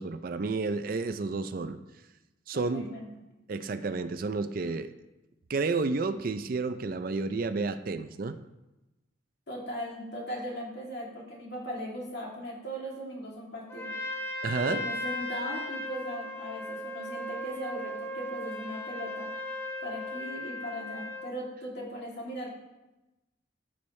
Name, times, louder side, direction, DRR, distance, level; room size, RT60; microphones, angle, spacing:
voice 1, 0.0-1.8 2.5-2.9 3.5-4.9 5.5-8.4 14.4-14.8, right 3 dB, 45° right, 10 dB, 0.4 m, -31 dB
voice 2, 2.5-3.1 9.5-13.9 14.5-19.3 19.8-22.5, equal, 60° left, -3 dB, 2.6 m, -38 dB
Trumpet, 13.7-21.3, left 1 dB, 10° left, 0.9 m, -37 dB
14.0 x 7.0 x 3.2 m, 1.0 s
head